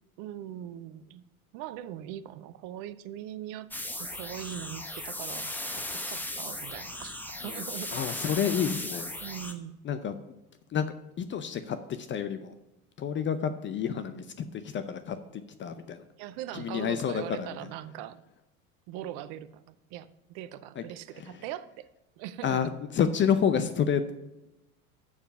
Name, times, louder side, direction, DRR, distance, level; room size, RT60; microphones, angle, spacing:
voice 1, 0.2-1.2 1.5-3.7 4.0-7.2 7.4-8.2 9.2-9.7 16.2-18.2 18.9-21.9 22.2-22.6, right 11 dB, 50° right, 14 dB, 0.7 m, -41 dB
sound 1, 3.7-9.5, left 1 dB, 5° left, 1.0 m, -37 dB
voice 2, 7.9-9.1 9.8-10.2 10.7-10.9 11.2-12.5 13.0-16.0 16.5-17.6 20.8-20.9 21.2-21.4 22.4-24.1, left 7 dB, 25° left, 10 dB, 0.6 m, -29 dB
7.3 x 6.6 x 5.9 m, 0.94 s
hypercardioid pair, 80°, 43 cm